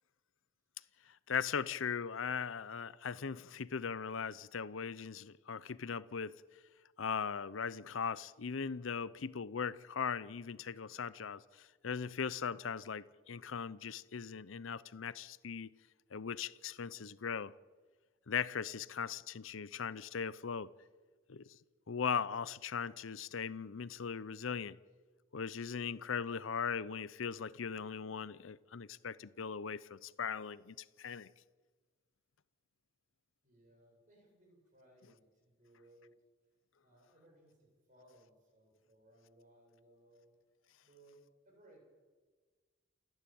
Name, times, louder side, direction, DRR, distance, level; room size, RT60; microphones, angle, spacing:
voice 1, 1.3-6.4 7.0-15.7 16.1-17.5 18.3-20.7 21.3-21.5 21.9-24.8 25.3-31.3, left 6 dB, 80° left, 0.6 m, -39 dB
voice 2, 33.4-36.2 36.8-40.3 40.8-41.8, right 1 dB, 40° right, 7.9 m, -64 dB
28.5 x 11.0 x 9.3 m
head